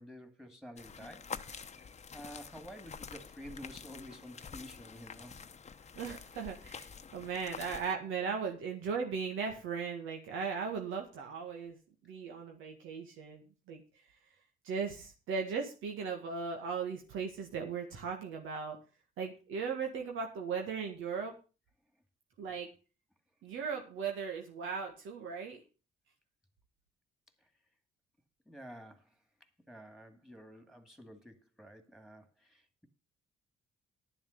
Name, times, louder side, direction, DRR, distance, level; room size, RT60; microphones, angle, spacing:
voice 1, 0.0-1.3 1.7-1.9 2.1-5.4 28.5-29.2 29.7-32.9, equal, ahead, 2.3 m, -50 dB
sound 1, 0.8-7.9, left 6 dB, 35° left, 0.9 m, -47 dB
voice 2, 6.0-11.8 12.1-13.8 14.6-18.8 19.2-21.3 22.4-22.7 23.4-25.6, right 5 dB, 90° right, 1.9 m, -37 dB
11.0 x 7.3 x 6.5 m
cardioid pair, 90°, 20 cm